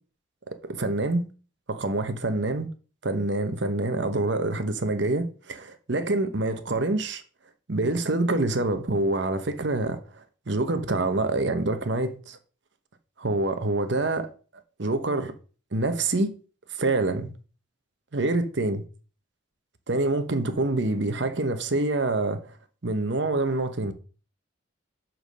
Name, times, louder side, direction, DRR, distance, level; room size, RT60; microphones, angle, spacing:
voice 1, 0.5-1.3 1.7-2.7 3.0-7.2 7.7-12.4 13.2-14.3 14.8-15.3 15.7-16.3 16.7-17.3 18.1-18.8 19.9-22.6 22.8-23.9, right 2 dB, 60° right, 0.9 m, -26 dB
5.8 x 5.3 x 6.6 m
head